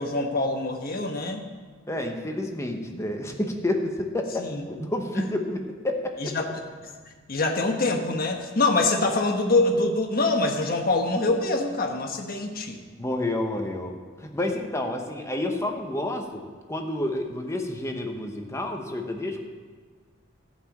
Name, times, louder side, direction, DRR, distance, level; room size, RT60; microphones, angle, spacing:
voice 1, 0.0-1.5 4.4-4.6 5.2-5.3 6.2-6.5 6.8-6.9 7.3-12.8, left 2 dB, 45° left, 3 dB, 1.2 m, -25 dB
voice 2, 1.9-6.3 13.0-16.4 16.7-19.4, left 1 dB, 15° left, 3 dB, 1.0 m, -29 dB
13.5 x 5.8 x 7.2 m, 1.5 s
head